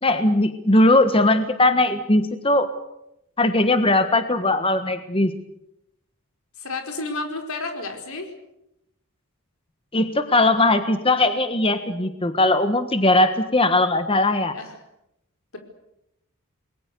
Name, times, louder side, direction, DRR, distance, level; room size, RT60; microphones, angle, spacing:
voice 1, 0.0-2.7 3.4-5.3 9.9-14.5, left 2 dB, 25° left, 9 dB, 1.4 m, -19 dB
voice 2, 6.6-8.3 14.5-14.7, left 3 dB, 80° left, 4 dB, 4.7 m, -31 dB
28.5 x 21.5 x 6.8 m, 0.83 s
head